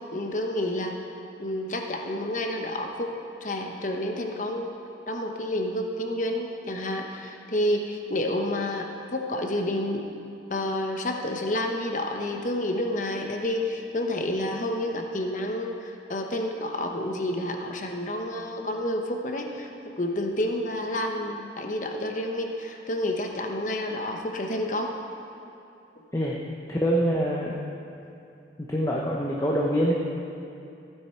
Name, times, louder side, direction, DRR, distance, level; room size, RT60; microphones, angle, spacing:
voice 1, 0.1-1.0 1.4-3.1 3.4-4.7 5.1-8.9 9.1-10.0 10.5-19.7 20.0-24.9, left 1 dB, 45° left, 3 dB, 1.0 m, -29 dB
voice 2, 26.7-27.6 28.7-29.9, equal, 20° left, -3 dB, 0.8 m, -25 dB
15.5 x 9.3 x 4.5 m, 2.6 s
head